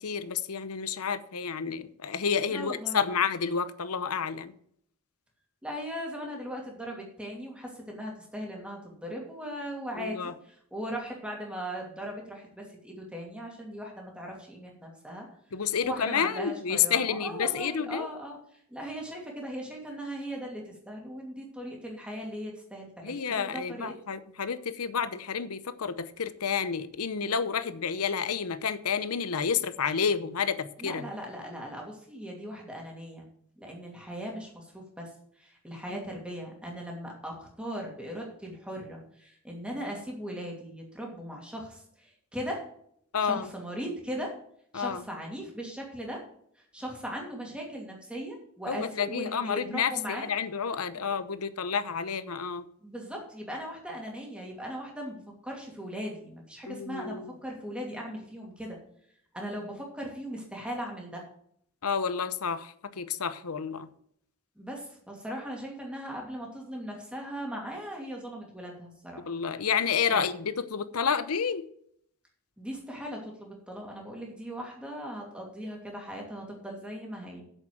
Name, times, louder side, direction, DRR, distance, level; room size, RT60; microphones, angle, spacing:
voice 1, 0.0-4.5 10.0-10.3 15.5-18.1 23.0-31.1 35.9-36.0 43.1-43.5 44.7-45.0 48.7-52.6 56.7-57.3 61.8-63.9 69.3-71.7, left 6 dB, 85° left, 0.8 m, -30 dB
voice 2, 2.5-3.0 5.6-15.3 15.8-23.9 30.8-33.2 33.6-35.1 35.4-42.6 43.2-44.3 44.7-46.2 46.6-50.3 52.8-58.8 59.3-61.2 64.6-69.3 70.1-70.3 72.6-77.4, equal, 5° right, 2.6 m, -39 dB
8.1 x 7.2 x 7.6 m
head